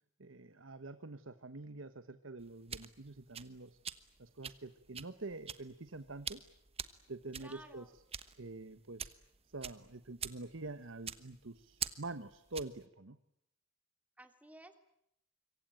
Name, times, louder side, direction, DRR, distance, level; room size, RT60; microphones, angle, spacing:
voice 1, 0.2-3.8 4.2-6.4 7.1-7.8 8.3-9.1 9.5-13.2, right 2 dB, 70° right, 11 dB, 1.2 m, -46 dB
sound 1, 2.4-12.8, right 8 dB, 30° right, 1.2 m, -46 dB
voice 2, 7.4-7.9 14.2-14.8, right 1 dB, 5° right, 8 dB, 2.8 m, -55 dB
26.0 x 23.5 x 9.0 m, 0.77 s
head